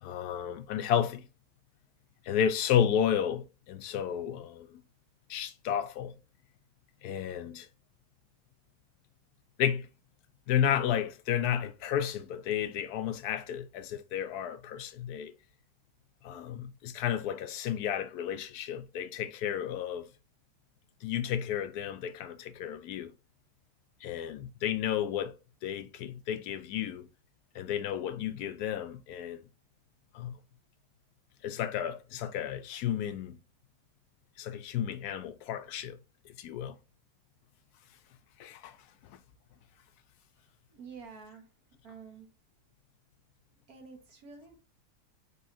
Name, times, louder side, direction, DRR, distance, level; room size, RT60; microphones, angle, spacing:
voice 1, 0.0-1.3 2.2-4.8 5.3-6.1 7.0-7.7 9.6-9.9 10.5-15.3 16.2-20.1 21.0-23.1 24.0-25.3 25.6-27.1 27.5-29.4 30.1-30.4 31.4-33.4 34.4-36.0 36.2-36.8 38.4-38.8 39.0-39.2, left 9 dB, 75° left, 1.1 m, -32 dB
voice 2, 40.7-41.5 41.8-42.3 43.7-44.6, right 5 dB, 65° right, 1.8 m, -49 dB
5.4 x 3.3 x 2.7 m
omnidirectional pair, 1.8 m